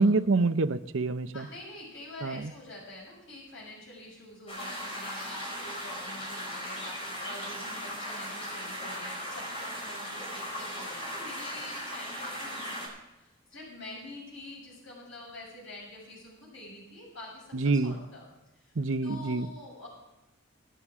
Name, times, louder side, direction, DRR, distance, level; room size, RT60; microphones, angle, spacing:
voice 1, 0.0-1.5 2.2-2.5 17.5-18.0 18.8-19.5, right 3 dB, 70° right, 11 dB, 0.7 m, -26 dB
voice 2, 1.3-12.9 13.2-18.3 18.6-18.7 19.0-19.9, left 2 dB, 70° left, -3 dB, 6.9 m, -46 dB
sound 1, 4.5-12.9, equal, 25° left, 5.6 m, -38 dB
25.0 x 9.8 x 3.7 m, 0.95 s
head